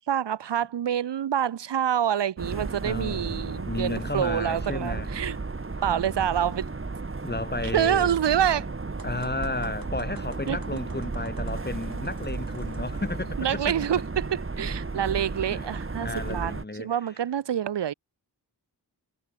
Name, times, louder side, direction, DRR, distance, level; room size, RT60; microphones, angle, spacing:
voice 1, 0.1-5.4 5.8-6.7 7.7-8.7 10.5-10.8 13.4-17.9, right 9 dB, 75° right, 0.8 m, -27 dB
sound 1, 2.4-16.6, right 3 dB, 30° right, 1.8 m, -34 dB
voice 2, 2.8-5.1 7.2-8.1 9.0-13.7 15.5-17.0, left 2 dB, 25° left, 3.5 m, -33 dB
sound 2, 9.0-13.2, right 4 dB, 55° right, 7.3 m, -51 dB
wide cardioid pair, 85°, 42 cm